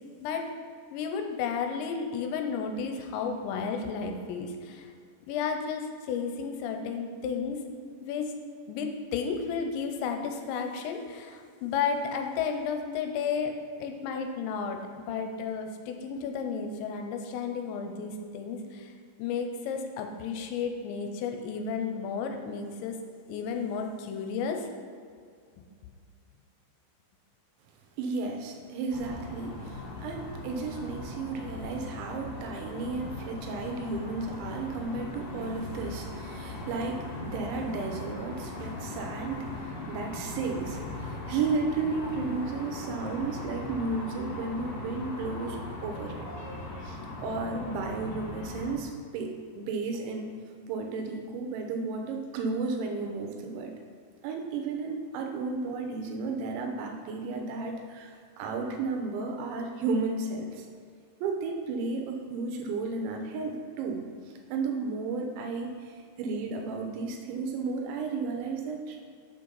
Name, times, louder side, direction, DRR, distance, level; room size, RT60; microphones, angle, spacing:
voice 1, 0.9-4.9 5.3-7.6 8.0-8.3 8.7-13.5 13.8-18.9 19.2-23.0 23.3-24.7 25.6-25.7, left 6 dB, 85° left, 5 dB, 2.9 m, -33 dB
voice 2, 28.0-46.3 46.8-50.3 50.7-53.7 54.2-60.7 61.2-64.0 64.5-69.0, right 4 dB, 85° right, 3 dB, 3.2 m, -33 dB
sound 1, 28.9-48.7, left 2 dB, 70° left, 2.2 m, -39 dB
6.6 x 5.1 x 5.6 m, 2.2 s
omnidirectional pair, 5.2 m